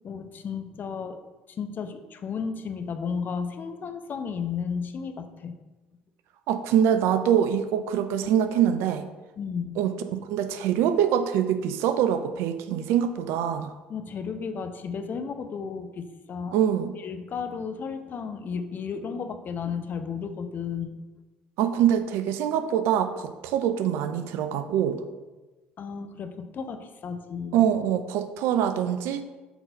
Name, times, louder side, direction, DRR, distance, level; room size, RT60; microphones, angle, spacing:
voice 1, 0.0-1.2 1.5-5.5 9.4-9.8 13.9-16.6 17.0-21.0 25.8-27.6, left 6 dB, 45° left, 8 dB, 0.8 m, -33 dB
voice 2, 6.5-9.1 9.8-13.7 16.5-16.9 21.6-25.0 27.5-29.2, right 9 dB, 65° right, 10 dB, 0.6 m, -24 dB
8.1 x 4.0 x 5.1 m, 1.2 s
hypercardioid pair, 60°, 5 cm